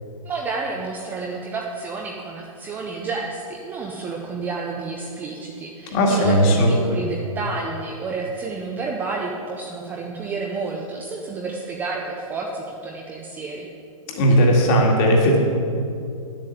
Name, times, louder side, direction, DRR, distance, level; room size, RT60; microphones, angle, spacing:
voice 1, 0.2-13.7, right 4 dB, 10° right, -1 dB, 0.6 m, -30 dB
voice 2, 5.9-6.7 14.1-15.4, equal, 30° left, 0 dB, 2.0 m, -16 dB
9.8 x 7.6 x 7.8 m, 2.5 s
hypercardioid pair, 155°, 19 cm